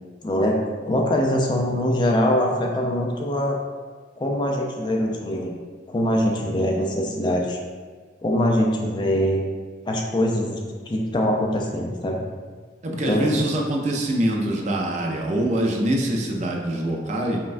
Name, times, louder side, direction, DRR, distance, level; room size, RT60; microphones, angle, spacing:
voice 1, 0.2-3.6 4.2-5.6 5.9-7.6 8.2-9.4 9.9-10.6 10.9-12.2 13.0-13.4, left 1 dB, 25° left, 0 dB, 0.3 m, -23 dB
voice 2, 12.8-17.4, right 1 dB, 40° right, 0 dB, 0.4 m, -24 dB
5.3 x 2.2 x 2.5 m, 1.5 s
head